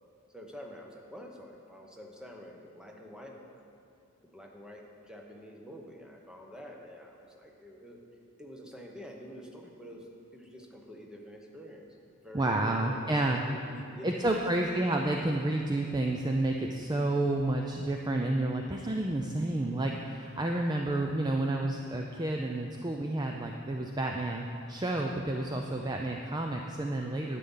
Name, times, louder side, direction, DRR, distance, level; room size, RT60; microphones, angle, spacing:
voice 1, 0.3-3.6 4.3-8.0 8.4-14.7, equal, 5° right, 0 dB, 1.0 m, -48 dB
voice 2, 12.3-13.4 14.0-27.4, right 2 dB, 20° right, 2 dB, 0.4 m, -30 dB
11.0 x 8.3 x 5.6 m, 2.5 s
head